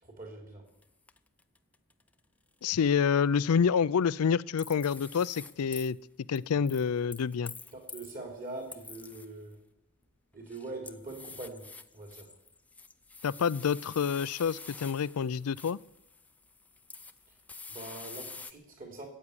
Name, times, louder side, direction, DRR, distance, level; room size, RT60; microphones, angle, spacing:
voice 1, 0.0-0.7 7.7-9.6 10.3-11.7 11.9-12.3 17.7-19.1, right 2 dB, 40° right, 3 dB, 3.5 m, -43 dB
sound 1, 0.8-0.9 1.1-2.1 4.6-5.9 6.4-8.1 8.5-9.5 10.3-18.5, left 4 dB, 5° left, 0.5 m, -48 dB
voice 2, 2.6-6.0 6.3-7.5 13.2-15.8, left 6 dB, 90° left, 18 dB, 0.4 m, -28 dB
13.5 x 8.4 x 9.9 m, 0.88 s
head